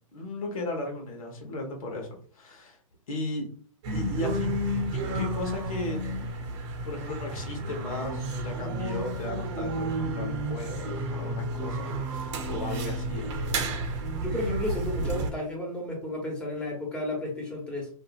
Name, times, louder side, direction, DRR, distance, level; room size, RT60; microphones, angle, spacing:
voice 1, 0.1-2.1 2.3-2.8 3.1-3.4 3.9-6.5 6.8-13.8, left 1 dB, 75° left, 1.0 m, -36 dB
sound 1, 3.8-15.3, right 1 dB, 55° right, 0.8 m, -31 dB
voice 2, 13.8-17.9, left 1 dB, 5° left, 1.1 m, -33 dB
2.7 x 2.5 x 2.4 m
hypercardioid pair, 115°, 18 cm